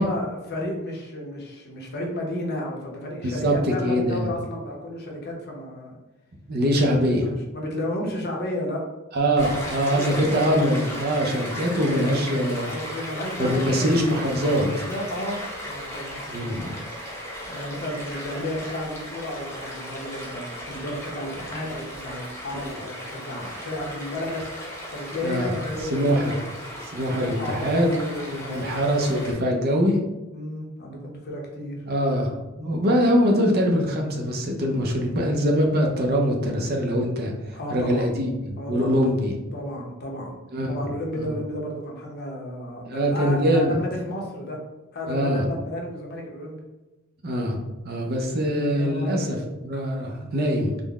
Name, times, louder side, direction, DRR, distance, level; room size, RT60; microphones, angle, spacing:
voice 1, 0.0-5.9 7.0-8.8 9.9-10.6 11.6-14.0 14.8-16.8 17.5-24.4 24.9-26.4 27.0-28.8 30.3-31.8 32.5-32.8 37.5-38.1 38.6-39.1 39.5-44.6 44.9-46.6 48.5-49.5, left 1 dB, 50° left, 0 dB, 0.7 m, -33 dB
voice 2, 3.2-4.3 6.5-7.2 9.1-12.6 13.4-14.9 16.3-16.7 22.6-22.7 25.2-25.5 25.9-26.4 26.9-30.0 31.9-32.4 32.6-37.3 37.7-39.3 40.5-40.8 41.2-41.3 42.8-43.8 45.1-45.4 47.2-50.7, equal, 50° right, 1 dB, 0.6 m, -23 dB
Stream, 9.4-29.3, equal, 15° left, 0.7 m, -36 dB
3.8 x 2.1 x 3.4 m, 1.1 s
head